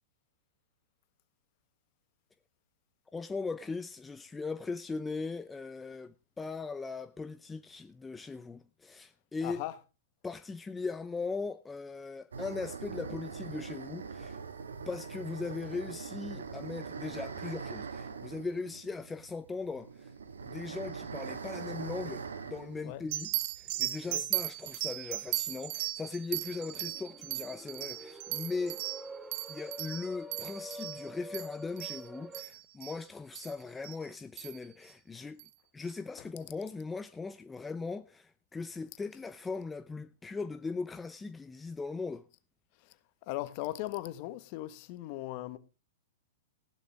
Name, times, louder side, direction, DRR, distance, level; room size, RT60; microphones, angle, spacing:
voice 1, 3.1-9.6 10.2-14.4 14.9-20.1 20.4-23.3 23.6-28.8 29.5-35.4 35.7-42.2, left 4 dB, 10° left, 0.6 m, -39 dB
voice 2, 9.4-9.8 22.8-23.0 24.1-24.2 42.8-43.0 43.3-45.6, left 16 dB, 45° left, 1.4 m, -38 dB
sound 1, 12.3-23.7 24.0-24.1 24.7-25.4, right 5 dB, 80° right, 1.8 m, -42 dB
sound 2, 23.1-33.0 33.3-33.5 33.8-34.0 34.4-34.7 35.4-35.5, right 17 dB, 50° right, 1.0 m, -37 dB
sound 3, 26.3-32.4, equal, 5° right, 1.9 m, -47 dB
15.5 x 11.5 x 3.5 m
hypercardioid pair, 110°, 0 cm